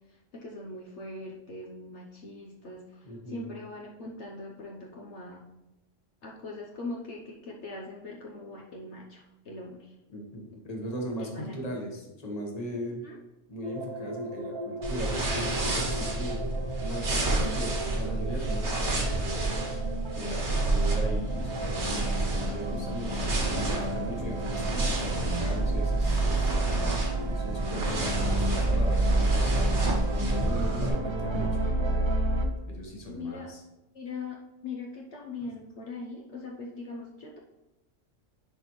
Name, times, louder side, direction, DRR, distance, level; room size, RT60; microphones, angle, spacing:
voice 1, 0.0-5.5 6.2-10.0 11.2-11.7 13.0-13.2 33.1-33.5 33.9-37.4, left 3 dB, 65° left, -1 dB, 1.1 m, -41 dB
voice 2, 3.0-3.5 10.1-13.0 13.5-16.4 16.8-19.5 20.1-26.6 27.3-32.1 32.7-33.6, equal, 30° left, 0 dB, 1.3 m, -38 dB
sound 1, 13.6-32.5, right 2 dB, 30° right, 0.5 m, -31 dB
sound 2, 14.8-30.9, right 2 dB, 60° right, 1.7 m, -30 dB
10.5 x 4.2 x 3.1 m, 0.97 s
omnidirectional pair, 1.3 m